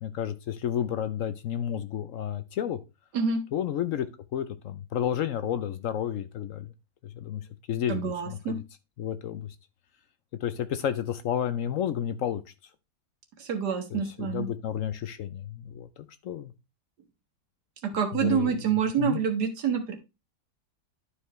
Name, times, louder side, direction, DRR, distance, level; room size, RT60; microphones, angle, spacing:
voice 1, 0.0-2.8 3.5-4.1 4.3-6.7 7.0-8.6 9.0-9.5 10.4-12.4 13.9-16.5 18.1-18.6 19.0-19.2, left 10 dB, 65° left, 0.9 m, -31 dB
voice 2, 7.9-8.6 13.4-14.5 17.8-20.0, right 6 dB, 85° right, 2.0 m, -27 dB
11.5 x 4.7 x 3.1 m
omnidirectional pair, 1.7 m